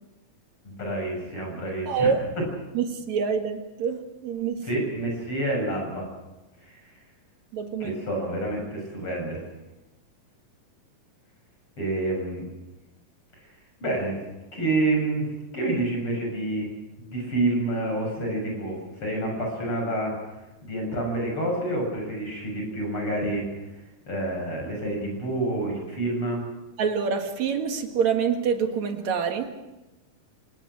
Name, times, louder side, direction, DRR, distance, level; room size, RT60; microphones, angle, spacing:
voice 1, 0.6-2.1 4.6-6.1 6.6-6.8 7.8-9.4 11.8-12.4 13.8-14.2 14.5-16.7 17.0-20.1 20.6-23.4 24.1-26.4, right 2 dB, 35° left, 1 dB, 8.4 m, -28 dB
voice 2, 1.9-2.2 2.7-4.7 7.5-8.0 26.8-29.5, right 6 dB, 60° right, 5 dB, 2.9 m, -26 dB
26.5 x 19.0 x 6.4 m, 1.0 s
omnidirectional pair, 4.0 m